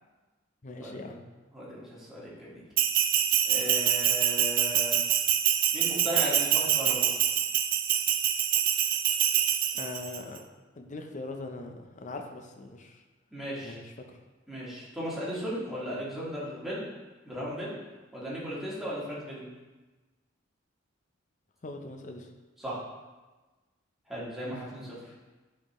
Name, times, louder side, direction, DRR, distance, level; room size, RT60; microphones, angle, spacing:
voice 1, 0.6-1.2 9.7-10.4 10.8-13.0 13.6-13.9 21.6-22.3 24.5-24.6, left 2 dB, 40° left, 4 dB, 0.7 m, -41 dB
voice 2, 1.5-2.6 3.5-5.1 5.7-7.1 13.3-13.8 14.5-16.9 17.3-17.7 18.1-19.5 22.6-22.8 24.1-25.0, equal, ahead, -8 dB, 1.8 m, -36 dB
Bell, 2.8-10.2, right 10 dB, 45° right, 0.4 m, -25 dB
9.3 x 4.4 x 3.1 m, 1.2 s
head